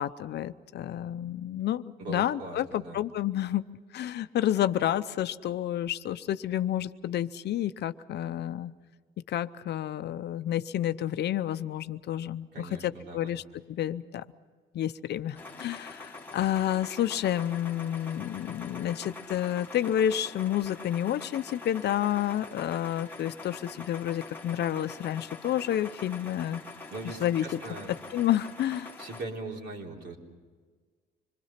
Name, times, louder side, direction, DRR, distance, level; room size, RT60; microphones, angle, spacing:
voice 1, 0.0-1.8 2.1-3.6 3.9-8.7 9.3-13.4 13.7-14.2 14.7-26.6 27.2-27.6 27.9-28.9, left 11 dB, 60° left, 11 dB, 0.7 m, -30 dB
voice 2, 2.0-3.0 12.5-13.4 26.9-28.0 29.0-30.2, right 3 dB, 60° right, 0 dB, 3.9 m, -40 dB
sound 1, 15.4-29.2, left 3 dB, 10° left, 1.7 m, -44 dB
26.0 x 22.5 x 5.8 m, 1.5 s
cardioid pair, 155°, 20 cm